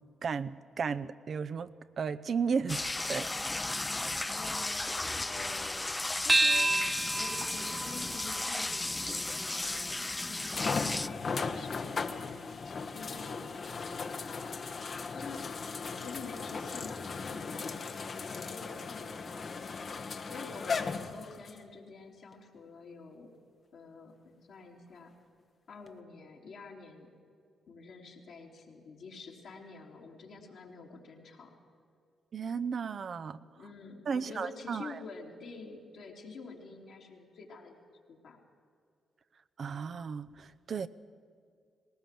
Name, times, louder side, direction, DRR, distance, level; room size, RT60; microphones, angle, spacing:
voice 1, 0.2-2.8 3.1-3.3 32.3-33.4 34.1-35.0 39.6-40.9, right 6 dB, 60° right, 12 dB, 0.7 m, -34 dB
sound 1, 2.7-11.1, left 2 dB, 20° left, 0.4 m, -34 dB
voice 2, 4.3-5.9 6.2-6.7 7.1-10.9 11.3-12.3 12.6-14.6 15.1-15.4 15.8-19.5 20.2-23.3 23.7-25.1 25.7-27.1 27.7-31.6 33.4-38.4, left 4 dB, 70° left, -1 dB, 3.2 m, -48 dB
sound 2, 6.3-11.0, right 2 dB, 25° right, 1.0 m, -32 dB
sound 3, 9.5-9.6 10.6-21.6 22.3-22.4 25.9-26.0, left 4 dB, 55° left, 1.2 m, -37 dB
19.0 x 18.5 x 7.6 m, 2.3 s
supercardioid pair, 50°, 0 cm